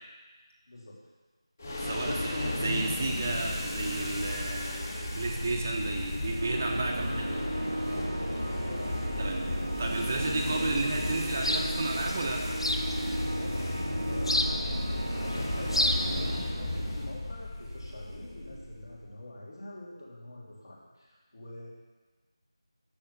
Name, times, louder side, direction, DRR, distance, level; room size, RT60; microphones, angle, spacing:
sound 1, 1.6-19.0, left 1 dB, 30° left, 1.8 m, -34 dB
voice 1, 1.8-7.4 9.2-9.4 9.8-12.5, right 2 dB, 25° right, 1 dB, 0.8 m, -33 dB
Organ, 6.4-17.3, right 1 dB, 70° right, 0.7 m, -36 dB
voice 2, 8.4-9.4 13.4-21.7, left 1 dB, 50° left, -4 dB, 3.2 m, -46 dB
sound 2, 9.8-16.5, left 1 dB, 70° left, 1.1 m, -34 dB
10.5 x 7.1 x 7.1 m, 1.3 s
figure-of-eight pair, 170°, 3 cm